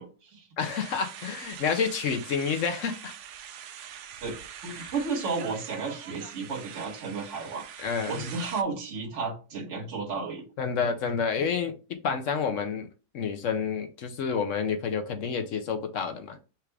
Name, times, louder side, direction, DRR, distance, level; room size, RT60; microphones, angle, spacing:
voice 1, 0.0-0.4 4.2-10.4, right 4 dB, 50° right, -2 dB, 1.6 m, -33 dB
voice 2, 0.6-3.1 4.8-4.9 7.8-8.3 10.6-12.9 13.1-16.4, left 6 dB, 60° left, 7 dB, 0.9 m, -29 dB
sound 1, 0.6-8.6, right 9 dB, 70° right, 0.7 m, -44 dB
5.7 x 2.5 x 3.2 m, 0.32 s
omnidirectional pair, 1.7 m